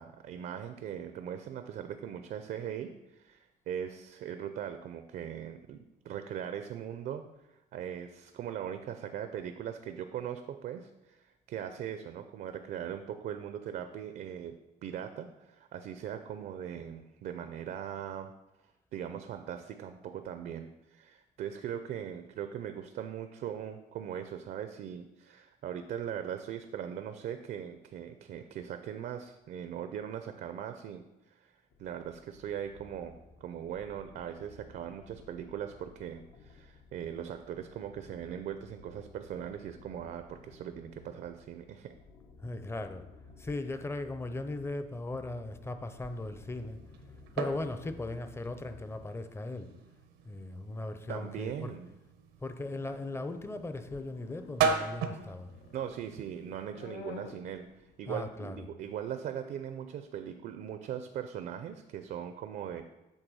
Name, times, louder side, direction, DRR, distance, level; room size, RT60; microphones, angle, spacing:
voice 1, 0.0-14.6 14.8-18.3 18.9-41.9 51.1-52.0 55.7-62.8, right 9 dB, 60° right, 8 dB, 0.5 m, -40 dB
sound 1, 31.7-49.1, left 4 dB, 70° left, 1.1 m, -56 dB
voice 2, 42.4-43.1 43.4-46.8 47.3-49.7 50.3-51.8 52.4-55.5 58.1-58.7, left 2 dB, 15° left, 9 dB, 0.6 m, -38 dB
sound 2, 46.0-56.7, right 6 dB, 90° right, 0.8 m, -38 dB
sound 3, 52.6-58.3, left 5 dB, 90° left, 0.8 m, -51 dB
8.1 x 3.5 x 6.2 m, 0.98 s
cardioid pair, 110°, 17 cm